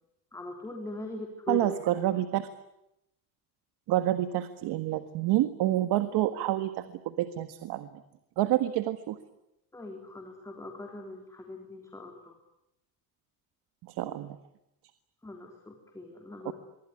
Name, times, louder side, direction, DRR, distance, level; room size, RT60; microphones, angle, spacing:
voice 1, 0.3-2.0 9.7-12.3 15.2-16.5, left 2 dB, 10° left, 2 dB, 3.6 m, -41 dB
voice 2, 1.5-2.5 3.9-8.0 8.4-9.2 13.9-14.4 16.5-16.6, right 14 dB, 80° right, 10 dB, 1.7 m, -28 dB
25.0 x 24.0 x 9.8 m, 0.85 s
cardioid pair, 155°, 40 cm